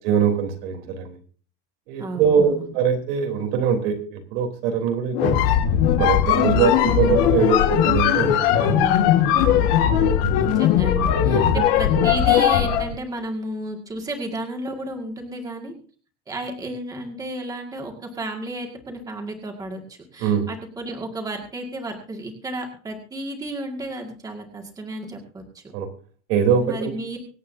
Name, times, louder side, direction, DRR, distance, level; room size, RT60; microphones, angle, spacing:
voice 1, 0.0-1.1 1.9-5.5 6.0-8.7 10.0-10.6 11.3-11.6 20.2-20.5 25.7-25.9 26.3-26.9, right 7 dB, 80° right, 4 dB, 3.5 m, -22 dB
voice 2, 2.0-2.7 6.3-6.7 8.6-9.7 10.4-15.7 16.3-25.6 26.6-27.2, right 1 dB, 10° right, 2 dB, 2.1 m, -32 dB
sound 1, 5.1-12.9, left 10 dB, 75° left, 1.7 m, -19 dB
25.0 x 8.5 x 2.7 m, 0.42 s
cardioid pair, 175°, 29 cm